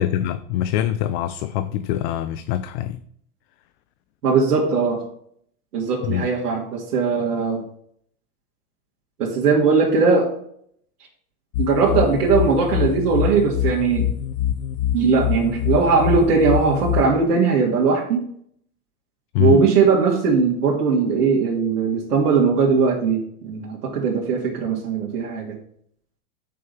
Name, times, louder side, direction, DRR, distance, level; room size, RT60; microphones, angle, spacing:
voice 1, 0.0-3.0 6.0-6.3 19.3-19.7, left 12 dB, 45° left, 14 dB, 0.5 m, -23 dB
voice 2, 4.2-5.0 5.7-7.6 9.2-10.3 11.6-14.1 14.9-18.2 19.4-25.5, right 5 dB, 85° right, -3 dB, 2.2 m, -19 dB
sound 1, 11.5-17.1, left 10 dB, 75° left, 0.9 m, -24 dB
6.6 x 5.4 x 7.0 m, 0.66 s
hypercardioid pair, 120°, 46 cm